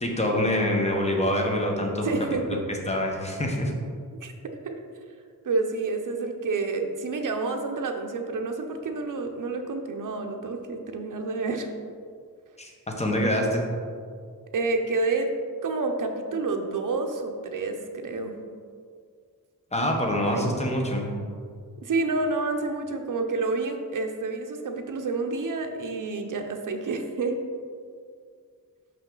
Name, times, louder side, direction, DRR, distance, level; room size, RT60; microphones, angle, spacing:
voice 1, 0.0-2.1 2.9-3.7 12.6-12.7 13.0-13.7 19.7-21.1, left 1 dB, 20° left, 0 dB, 0.9 m, -25 dB
voice 2, 2.0-2.6 4.2-4.3 4.6-4.8 5.4-11.7 14.5-15.3 15.6-18.3 20.2-20.6 21.8-27.4, right 3 dB, 65° right, 4 dB, 0.7 m, -29 dB
5.7 x 5.5 x 3.8 m, 2.1 s
wide cardioid pair, 125°, 35 cm